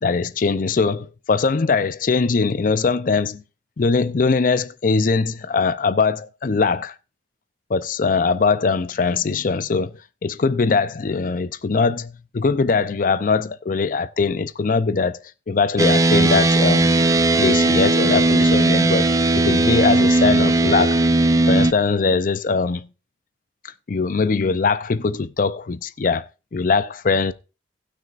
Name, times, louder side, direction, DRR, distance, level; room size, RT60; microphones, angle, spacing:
voice 1, 0.0-3.4 3.8-6.9 7.7-9.9 10.2-16.9 17.4-21.0 21.5-22.9 23.6-27.3, left 4 dB, 50° left, 0.5 m, -21 dB
sound 1, 15.8-21.7, right 2 dB, 20° right, 0.4 m, -17 dB
18.5 x 6.2 x 2.4 m
head